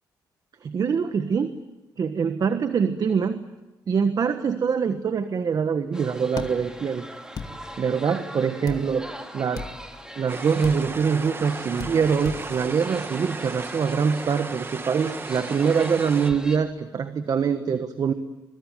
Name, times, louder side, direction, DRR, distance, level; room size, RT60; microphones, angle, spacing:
voice 1, 0.6-1.5 2.0-3.4 3.9-7.0 7.8-9.1 9.3-9.7 10.2-18.1, right 6 dB, 50° right, 9 dB, 1.4 m, -24 dB
sound 1, 5.9-16.6, right 1 dB, 10° right, 3.3 m, -42 dB
sound 2, 6.4-6.5 7.3-7.5 8.7-8.8 9.5-9.7 10.6-10.8 11.8-11.9 12.2-12.4, left 6 dB, 55° left, 2.4 m, -34 dB
sound 3, 10.3-16.3, right 3 dB, 30° right, 1.7 m, -36 dB
24.0 x 23.0 x 9.3 m, 1.1 s
cardioid pair, 90°, 8 cm